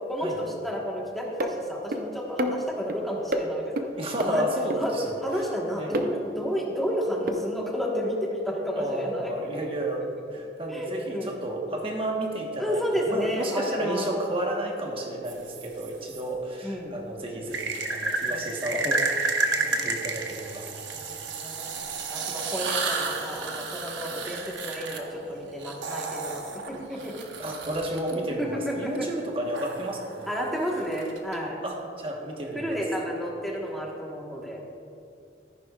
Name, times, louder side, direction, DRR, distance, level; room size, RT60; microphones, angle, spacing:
voice 1, 0.1-3.9 4.2-9.3 10.7-11.4 12.6-14.1 16.6-17.0 18.3-19.0 19.5-20.0 20.9-21.7 22.1-27.2 28.1-29.1 30.3-31.6 32.5-34.6, equal, ahead, -3 dB, 1.3 m, -31 dB
sound 1, 1.4-1.5 1.9-2.0 2.4-3.0 3.3-3.4 3.8-3.9 4.2-4.3 4.7-4.8 5.9-6.1 7.3-7.4, right 1 dB, 50° right, 0.6 m, -27 dB
voice 2, 4.0-5.2 5.8-6.1 8.7-20.7 27.4-30.3 31.6-32.8, right 1 dB, 30° right, 0 dB, 1.2 m, -32 dB
sound 2, 15.3-16.2 17.5-28.1 29.5-31.4, right 3 dB, 90° right, 0.9 m, -32 dB
13.5 x 10.5 x 2.4 m, 2.6 s
head